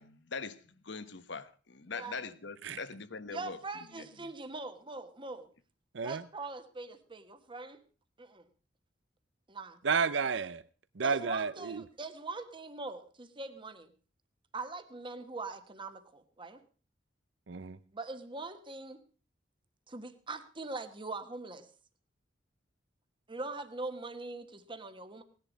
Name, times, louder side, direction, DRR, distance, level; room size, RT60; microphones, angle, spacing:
voice 1, 0.0-3.6 4.0-4.1, left 4 dB, 65° left, 1.1 m, -42 dB
voice 2, 1.9-2.2 3.3-5.5 6.0-7.8 8.2-8.5 9.5-9.8 11.0-13.9 14.5-16.6 17.9-19.0 19.9-21.7 23.3-25.2, right 3 dB, 25° right, 1.4 m, -42 dB
voice 3, 9.8-10.6 11.0-11.8 17.5-17.8, right 5 dB, 70° right, 0.6 m, -31 dB
18.0 x 10.5 x 5.1 m
head